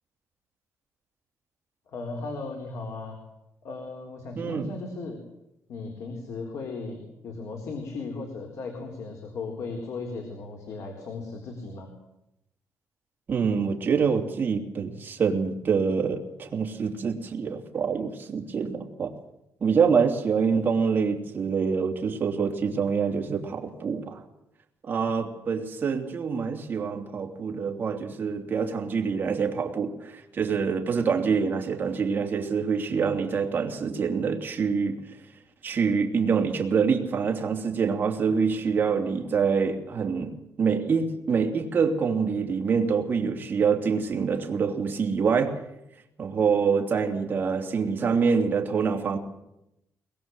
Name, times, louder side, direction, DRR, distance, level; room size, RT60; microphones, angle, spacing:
voice 1, 1.9-3.2 3.6-5.2 5.7-11.9, left 3 dB, 60° left, 2 dB, 3.8 m, -36 dB
voice 2, 4.4-4.7 13.3-19.1 19.6-24.2 24.8-35.0 35.6-45.6 46.2-49.2, right 5 dB, 35° right, 2 dB, 2.9 m, -26 dB
23.0 x 21.5 x 7.9 m, 0.86 s
cardioid pair, 170°, 6 cm